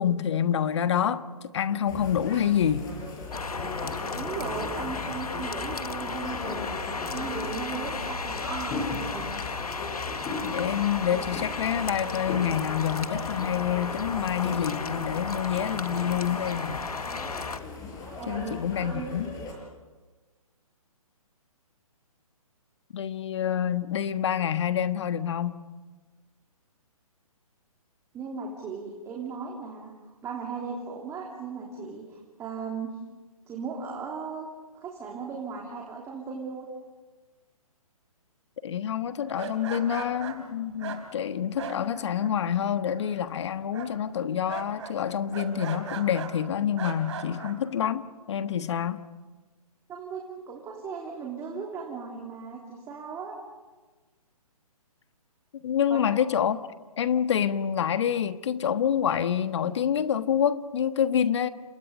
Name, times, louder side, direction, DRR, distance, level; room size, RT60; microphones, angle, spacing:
voice 1, 0.0-2.9 10.4-16.9 18.3-19.3 22.9-25.6 38.6-49.0 55.6-56.6 57.0-61.5, left 9 dB, 50° left, 1.4 m, -27 dB
sound 1, 1.9-19.5, left 3 dB, 20° left, 6.3 m, -38 dB
sound 2, 3.3-17.6, left 4 dB, 80° left, 1.7 m, -34 dB
voice 2, 4.1-9.4 18.2-18.6 18.8-19.5 28.1-33.0 33.5-34.5 34.8-36.7 49.9-53.4 55.9-56.0, right 5 dB, 15° right, 3.1 m, -37 dB
sound 3, 39.3-42.6 42.8-43.4 43.7-46.4 46.8-47.6, right 7 dB, 50° right, 4.3 m, -39 dB
29.5 x 27.0 x 5.3 m
figure-of-eight pair, 140°, 19 cm